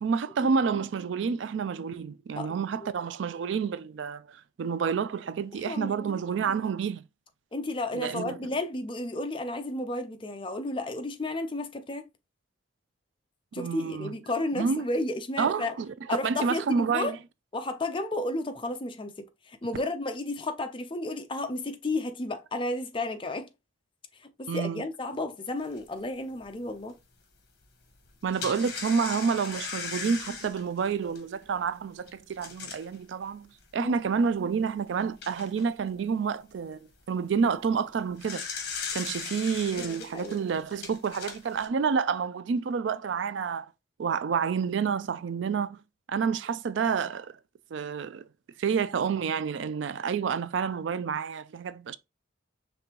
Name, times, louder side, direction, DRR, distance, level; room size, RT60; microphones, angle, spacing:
voice 1, 0.0-7.0 7.9-8.4 13.5-14.1 14.5-14.8 15.4-15.9 16.2-17.2 24.5-24.8 28.2-38.4 38.9-43.7 44.0-45.8 46.1-47.4 47.7-48.2 48.6-52.0, right 6 dB, 70° right, 0.4 m, -29 dB
voice 2, 2.3-2.9 5.7-6.2 7.5-12.1 13.5-15.8 16.1-17.2 17.5-23.5 24.2-27.0 33.8-33.9 39.8-40.4, left 2 dB, 25° left, 0.6 m, -33 dB
sound 1, 25.8-25.9 26.4-26.5 28.0-32.9 33.6-33.7 34.1-34.2 34.8-35.7 37.9-41.7, left 5 dB, 55° left, 1.2 m, -38 dB
5.2 x 3.4 x 2.9 m
head